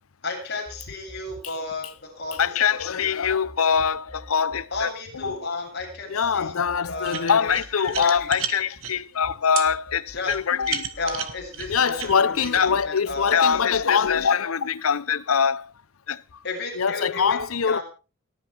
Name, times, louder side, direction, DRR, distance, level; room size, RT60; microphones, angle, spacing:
voice 1, 0.2-2.8 4.7-7.5 7.8-8.4 10.1-10.3 11.0-13.6 13.9-14.0 16.4-17.8, left 3 dB, 50° left, 7.6 m, -33 dB
sound 1, 0.7-2.5 2.8-9.3 9.7-12.3 12.7-14.3, equal, 20° right, 2.3 m, -48 dB
voice 2, 2.4-4.9 5.2-5.4 6.1-10.9 11.7-15.7 16.1-16.2 16.8-17.8, left 6 dB, 90° left, 0.8 m, -23 dB
sound 2, 7.0-8.9 9.6-9.7 10.2-12.6, right 8 dB, 75° right, 2.0 m, -32 dB
29.5 x 9.8 x 3.4 m
head